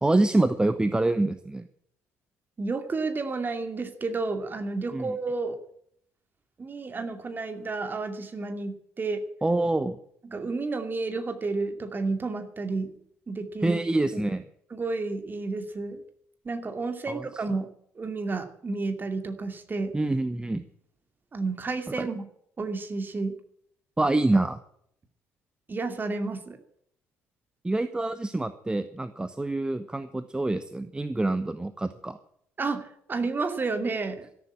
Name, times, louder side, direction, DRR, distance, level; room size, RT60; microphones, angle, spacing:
voice 1, 0.0-1.7 4.9-5.1 9.4-10.0 13.6-14.4 17.1-17.3 19.9-20.6 22.0-22.1 24.0-24.6 27.6-32.2, right 2 dB, 10° right, 11 dB, 0.9 m, -26 dB
voice 2, 2.6-5.6 6.6-9.2 10.2-12.9 13.3-13.8 14.7-16.0 16.4-19.9 21.3-22.2 22.6-23.4 25.7-26.6 32.6-34.3, right 3 dB, 30° right, 6 dB, 2.5 m, -31 dB
13.5 x 11.0 x 8.6 m, 0.68 s
figure-of-eight pair, 50°, 7 cm